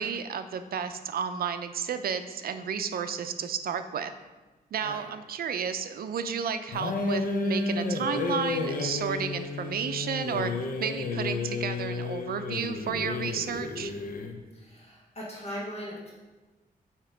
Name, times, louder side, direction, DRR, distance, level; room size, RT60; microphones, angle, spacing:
voice 1, 0.0-4.1 4.7-10.5 10.8-13.9, right 7 dB, 75° right, 9 dB, 0.4 m, -32 dB
sound 1, 6.7-14.4, left 3 dB, 65° left, 0.6 m, -31 dB
voice 2, 14.5-16.1, equal, 45° left, -5 dB, 1.3 m, -39 dB
7.5 x 2.9 x 5.0 m, 1.2 s
wide cardioid pair, 160°, 16 cm